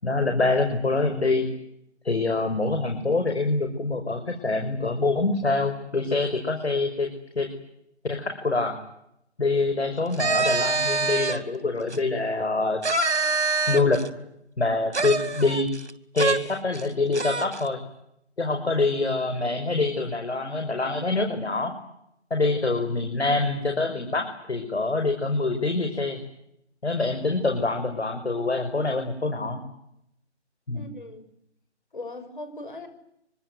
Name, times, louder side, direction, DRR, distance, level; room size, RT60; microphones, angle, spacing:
voice 1, 0.0-1.5 2.0-7.1 7.4-7.5 8.0-8.8 9.4-12.8 13.7-14.0 14.6-15.7 16.1-17.8 18.4-21.7 22.3-26.2 26.8-29.6 30.7-30.9, left 3 dB, 65° left, 5 dB, 5.4 m, -25 dB
sound 1, 10.1-11.4 11.9-12.0 12.8-14.1 14.9-15.9 16.2-16.4 16.7-16.8 17.1-17.6, right 3 dB, 75° right, 3.0 m, -25 dB
voice 2, 30.7-31.2 31.9-32.9, left 2 dB, 45° left, 8 dB, 6.2 m, -39 dB
25.0 x 24.0 x 9.5 m, 0.78 s
figure-of-eight pair, 175°, 35 cm